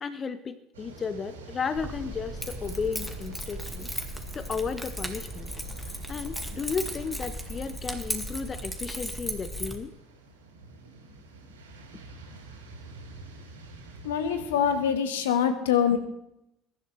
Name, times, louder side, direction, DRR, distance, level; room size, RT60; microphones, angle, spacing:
voice 1, 0.0-5.5 6.1-9.9, left 5 dB, 35° left, 13 dB, 0.9 m, -34 dB
sound 1, 0.7-14.9, right 3 dB, 85° right, 3.4 m, -47 dB
Keys jangling, 1.8-9.7, equal, ahead, 2.1 m, -36 dB
voice 2, 14.0-16.0, left 8 dB, 75° left, 9 dB, 1.4 m, -24 dB
22.5 x 11.5 x 3.3 m, 0.83 s
figure-of-eight pair, 60°, 0 cm